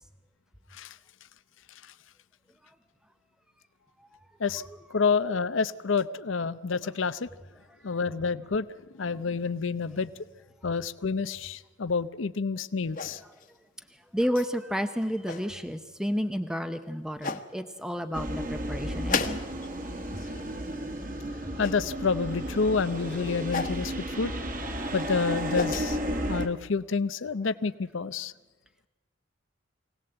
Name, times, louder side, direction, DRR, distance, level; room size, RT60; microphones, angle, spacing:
voice 1, 4.9-7.3 7.8-8.7 8.9-10.1 10.6-13.2 21.6-24.3 24.9-26.0 26.3-28.3, left 5 dB, 80° left, 14 dB, 0.7 m, -28 dB
sound 1, 12.9-13.5 14.3-14.5 15.0-15.5 16.5-16.6 17.2-17.5 19.1-19.8 20.0-20.5 21.6-21.8 23.5-23.8 25.2-25.9, left 4 dB, 40° left, 1.2 m, -33 dB
voice 2, 13.9-19.4, equal, 5° right, 8 dB, 0.7 m, -31 dB
sound 2, 18.1-26.5, equal, 40° right, 1.8 m, -33 dB
24.0 x 18.0 x 7.9 m, 1.2 s
head